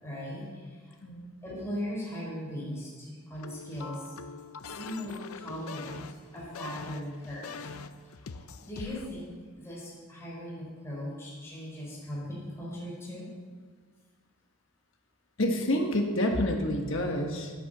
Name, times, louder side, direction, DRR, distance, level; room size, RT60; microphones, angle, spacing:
voice 1, 0.0-0.9 1.4-4.1 4.7-7.6 8.6-13.3, equal, 10° left, -7 dB, 4.1 m, -39 dB
sound 1, 3.3-9.1, left 4 dB, 75° left, 0.6 m, -43 dB
voice 2, 15.4-17.5, left 1 dB, 60° left, 2 dB, 1.5 m, -28 dB
10.0 x 8.6 x 6.7 m, 1.5 s
head